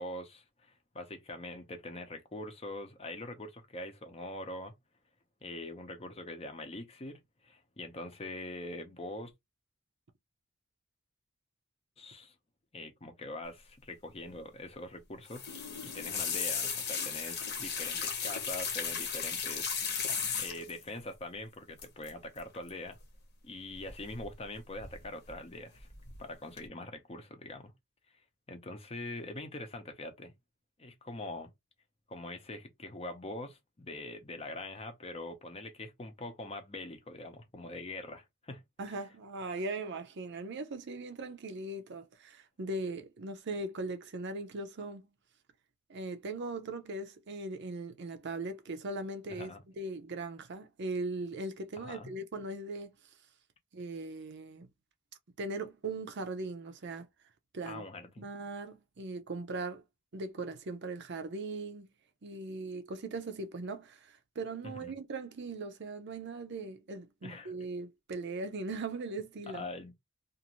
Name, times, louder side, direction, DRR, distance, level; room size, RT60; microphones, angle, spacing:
voice 1, 0.0-4.7 5.4-9.3 12.0-12.3 12.7-19.7 20.4-23.0 23.4-25.9 26.2-27.7 28.5-30.3 30.8-31.5 32.1-38.6 49.3-49.6 51.8-52.1 57.6-58.3 64.6-64.9 67.2-67.5 69.5-69.9, left 2 dB, 30° left, 0.7 m, -43 dB
sound 1, 15.3-20.8 21.8-22.1 22.4-22.7 23.9-24.4 24.8-25.3 25.8-26.2 26.6-26.7, left 6 dB, 50° left, 0.9 m, -35 dB
voice 2, 38.8-45.1 45.9-49.5 49.8-52.9 53.7-54.7 55.4-57.1 57.5-57.8 58.2-59.8 60.1-61.9 62.2-69.6, right 2 dB, 55° right, 0.6 m, -39 dB
2.5 x 2.5 x 2.9 m
head